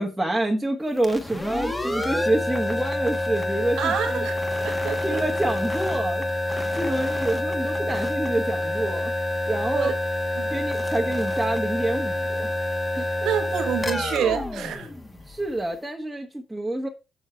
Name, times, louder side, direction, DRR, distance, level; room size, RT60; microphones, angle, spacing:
voice 1, 0.0-4.3 5.0-6.2 6.7-9.1 9.5-9.9 10.5-12.5 13.0-13.1 15.3-16.9, right 1 dB, 5° right, 1.4 m, -27 dB
sound 1, 1.0-15.6, left 1 dB, 15° left, 1.6 m, -27 dB
voice 2, 3.8-5.2 9.7-9.9 10.4-10.5 13.0-14.9, right 9 dB, 80° right, 1.5 m, -28 dB
7.3 x 6.4 x 4.5 m
cardioid pair, 90°, 0 cm